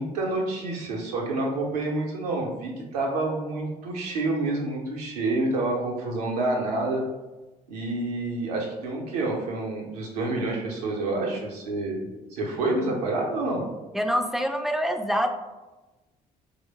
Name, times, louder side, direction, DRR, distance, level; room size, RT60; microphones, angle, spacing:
voice 1, 0.0-7.0 7.7-12.0 12.3-13.6, right 2 dB, 85° right, -2 dB, 0.6 m, -28 dB
voice 2, 13.9-15.3, equal, ahead, 5 dB, 0.3 m, -25 dB
3.2 x 2.1 x 3.2 m, 1.1 s
hypercardioid pair, 50°, 20 cm